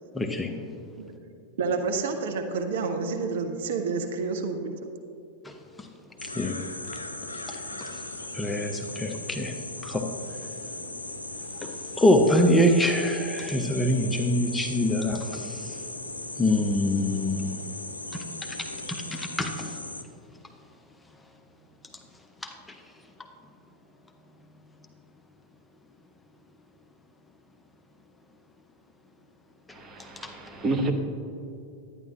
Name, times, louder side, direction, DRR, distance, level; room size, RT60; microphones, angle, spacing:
voice 1, 0.1-0.7 5.4-5.5 5.8-5.9 6.2-6.6 7.5-7.6 8.3-9.5 9.8-10.0 11.6-11.7 12.0-15.8 16.4-17.5 18.1-19.7 22.4-22.5 30.2-30.3, left 1 dB, 10° left, 0.6 m, -25 dB
voice 2, 1.6-4.7, right 4 dB, 55° right, 0.7 m, -29 dB
sound 1, 6.2-20.0, left 2 dB, 80° left, 0.5 m, -38 dB
voice 3, 29.8-30.9, right 2 dB, 25° right, 1.0 m, -29 dB
10.5 x 9.5 x 2.9 m
figure-of-eight pair, 90°, 0 cm